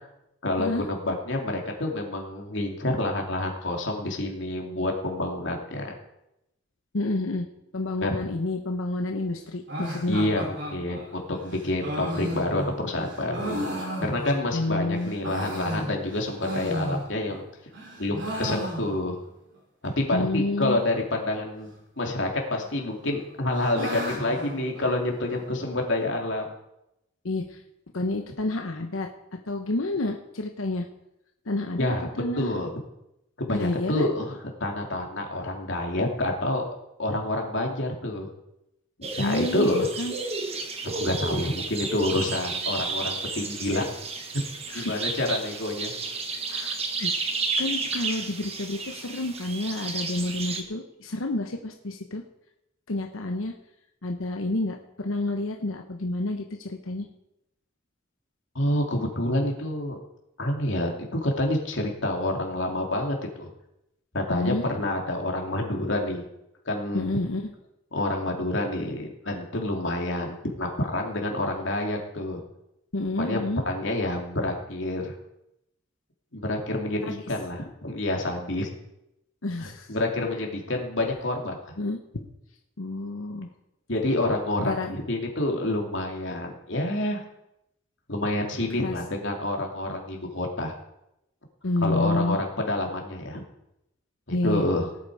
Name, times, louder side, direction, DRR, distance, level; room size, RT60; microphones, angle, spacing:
voice 1, 0.4-5.9 8.0-8.1 10.1-17.4 18.0-19.2 20.0-21.7 22.0-26.4 31.8-32.7 33.4-34.3 34.6-36.7 37.0-38.3 39.0-39.9 40.9-43.9 44.3-44.5 44.7-45.9 58.5-60.0 60.4-63.5 64.1-66.2 66.7-67.1 67.9-72.4 73.2-73.4 73.6-75.1 76.3-78.7 79.9-81.7 83.9-87.2 88.1-90.7 91.8-93.4 94.3-94.9, left 1 dB, 65° left, 1 dB, 2.8 m, -28 dB
voice 2, 6.9-7.5 7.7-10.2 14.5-15.1 20.1-20.8 27.2-27.6 27.9-29.1 29.5-30.9 31.5-31.9 32.2-32.7 33.5-34.1 39.2-40.1 44.7-45.1 46.5-47.1 47.6-52.2 52.9-53.5 54.0-57.1 64.3-64.6 66.9-67.5 72.9-73.6 77.0-77.2 79.4-80.0 81.8-82.3 82.8-83.5 84.6-84.9 88.8-89.0 91.6-92.4 94.3-94.6, left 2 dB, 90° left, 4 dB, 1.0 m, -29 dB
sound 1, 9.7-14.7 15.1-17.4 17.7-19.3 19.5-19.6 19.8-19.9 20.6-21.0 22.1-22.7 23.0-25.4, equal, 60° right, 3.4 m, -34 dB
sound 2, 39.0-50.6, right 4 dB, 30° right, 1.3 m, -32 dB
18.0 x 8.7 x 4.9 m, 0.86 s
head